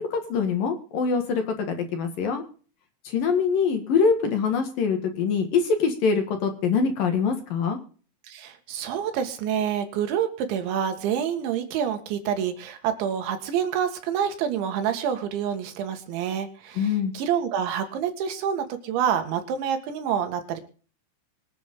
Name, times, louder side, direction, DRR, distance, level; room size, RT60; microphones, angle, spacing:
voice 1, 0.0-2.4 3.0-7.8 16.8-17.1, left 5 dB, 55° left, 6 dB, 2.9 m, -24 dB
voice 2, 8.3-20.6, right 8 dB, 75° right, 7 dB, 4.0 m, -27 dB
24.5 x 8.3 x 3.7 m, 0.40 s
omnidirectional pair, 5.6 m